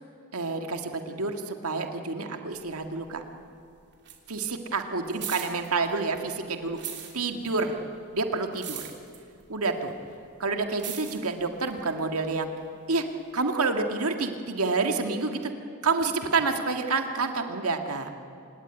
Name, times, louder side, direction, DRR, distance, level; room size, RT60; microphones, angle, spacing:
voice 1, 0.3-3.2 4.3-6.8 7.1-7.7 8.1-8.8 9.5-9.9 10.4-12.5 12.9-13.0 13.3-15.5 15.8-18.1, right 3 dB, 80° right, 5 dB, 1.9 m, -28 dB
sound 1, 2.5-3.6 3.8-6.3 6.6-12.6 13.3-13.4, right 10 dB, 55° right, 3.1 m, -41 dB
27.0 x 18.0 x 9.9 m, 2.5 s
head